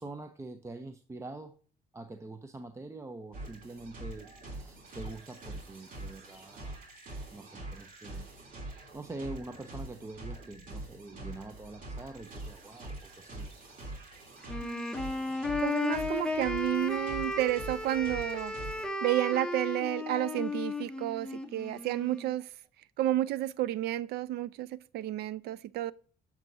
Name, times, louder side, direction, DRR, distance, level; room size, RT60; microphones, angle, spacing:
voice 1, 0.0-1.6 1.9-6.8 7.3-8.3 8.9-13.5, right 2 dB, 15° right, 0.6 m, -45 dB
sound 1, 3.3-18.9, right 2 dB, 55° right, 2.9 m, -44 dB
Wind instrument woodwind instrument, 14.4-22.3, left 2 dB, 5° left, 0.9 m, -34 dB
voice 2, 15.6-18.5 19.0-22.4 23.0-25.9, right 14 dB, 70° right, 0.4 m, -31 dB
7.5 x 7.2 x 2.6 m
cardioid pair, 110°, 17 cm